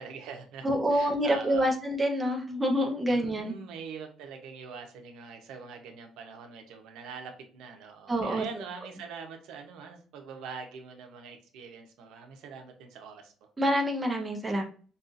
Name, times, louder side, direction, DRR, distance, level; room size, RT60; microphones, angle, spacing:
voice 1, 0.0-0.6 0.9-1.7 3.1-13.5, right 5 dB, 80° right, 4 dB, 0.8 m, -43 dB
voice 2, 0.6-3.5 8.1-8.4 13.6-14.6, equal, 10° right, 1 dB, 0.6 m, -27 dB
5.3 x 2.4 x 2.6 m, 0.41 s
cardioid pair, 180°, 0 cm